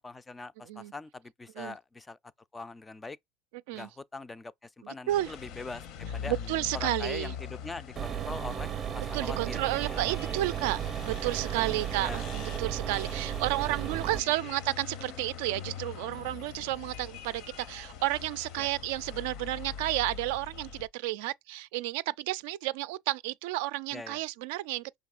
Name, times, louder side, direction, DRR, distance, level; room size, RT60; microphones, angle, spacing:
voice 1, 0.0-2.2 2.5-3.2 3.7-5.9 6.1-6.4 6.7-10.4 11.6-11.8 12.0-12.2 18.6-18.7 23.9-24.2, left 3 dB, 15° left, 0.3 m, -42 dB
voice 2, 4.8-5.3 6.3-7.4 9.0-25.0, right 17 dB, 75° right, 0.3 m, -32 dB
sound 1, 5.1-20.9, left 7 dB, 60° left, 0.7 m, -43 dB
sound 2, 8.0-14.2, right 10 dB, 30° right, 0.6 m, -34 dB
sound 3, 11.7-20.6, left 6 dB, 90° left, 1.3 m, -59 dB
5.3 x 3.5 x 2.4 m
supercardioid pair, 125°, 0 cm